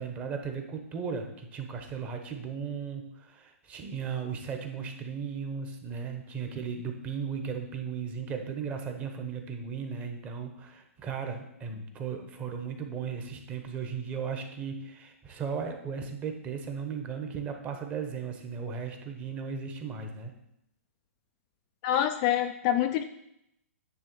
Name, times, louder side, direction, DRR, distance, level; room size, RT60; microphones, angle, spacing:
voice 1, 0.0-20.3, right 6 dB, 20° right, 5 dB, 1.0 m, -36 dB
voice 2, 21.8-23.0, left 11 dB, 30° left, 7 dB, 0.3 m, -26 dB
9.6 x 3.4 x 6.9 m, 0.79 s
hypercardioid pair, 150°, 8 cm